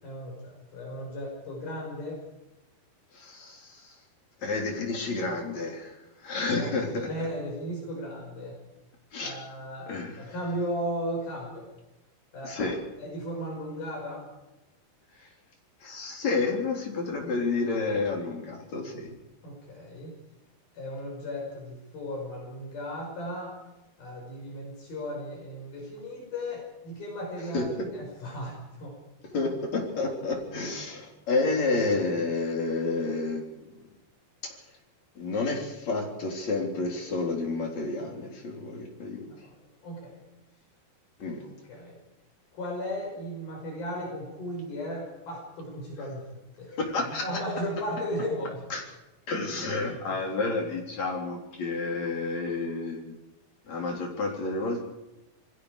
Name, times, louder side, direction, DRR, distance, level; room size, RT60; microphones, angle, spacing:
voice 1, 0.0-2.2 6.4-8.6 9.2-9.9 10.2-11.7 12.3-12.7 13.0-14.3 19.4-20.2 20.7-23.6 24.0-29.0 39.3-39.5 39.8-40.2 41.7-42.0 42.5-46.3 46.6-46.7 47.2-48.7 49.8-50.2, equal, 70° left, 0 dB, 7.4 m, -36 dB
voice 2, 3.1-4.0 4.4-6.0 6.2-7.1 9.1-9.3 9.9-10.3 12.4-12.8 15.2-15.3 15.8-19.2 27.5-27.9 29.3-33.8 34.4-34.6 35.2-39.3 41.2-41.4 46.7-47.4 48.7-48.9 49.3-53.2 53.7-54.8, left 3 dB, 45° left, 2 dB, 4.8 m, -30 dB
28.0 x 20.5 x 5.0 m, 1.0 s
omnidirectional pair, 4.4 m